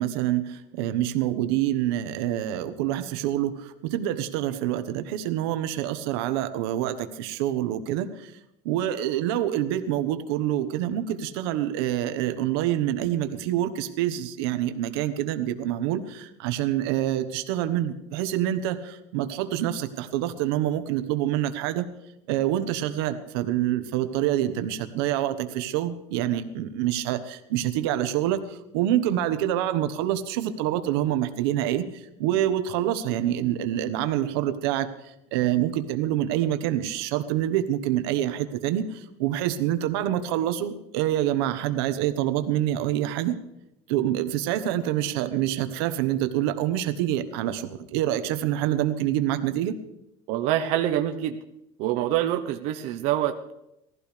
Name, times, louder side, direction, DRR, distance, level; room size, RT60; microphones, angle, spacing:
voice 1, 0.0-8.3 8.6-21.9 22.3-34.9 35.3-43.4 43.9-49.8, right 12 dB, 90° right, 10 dB, 1.2 m, -26 dB
voice 2, 50.3-51.4 51.8-53.5, right 12 dB, 60° right, 6 dB, 0.9 m, -25 dB
21.0 x 15.0 x 3.3 m, 0.85 s
cardioid pair, 155°, 13 cm